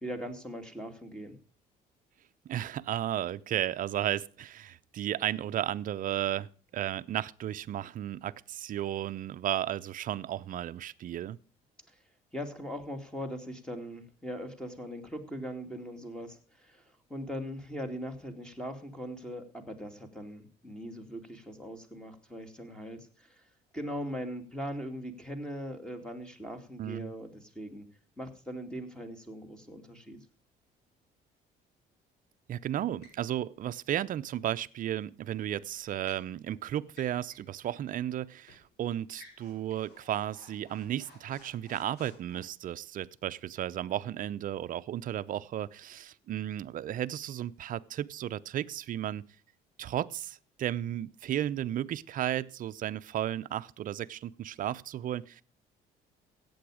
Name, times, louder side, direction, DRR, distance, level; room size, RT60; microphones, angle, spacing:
voice 1, 0.0-1.4 11.9-12.0 12.3-23.5 23.7-27.9 28.2-30.2, equal, 5° left, 2.6 m, -40 dB
voice 2, 2.5-11.4 26.8-27.1 32.5-49.3 49.8-55.4, right 11 dB, 55° right, 0.7 m, -34 dB
sound 1, 33.0-33.3 35.5-36.3 36.9-37.5 37.9-38.0 38.5-38.7 39.1-42.4, left 3 dB, 80° left, 4.8 m, -57 dB
15.0 x 8.8 x 4.9 m
cardioid pair, 110°, 17 cm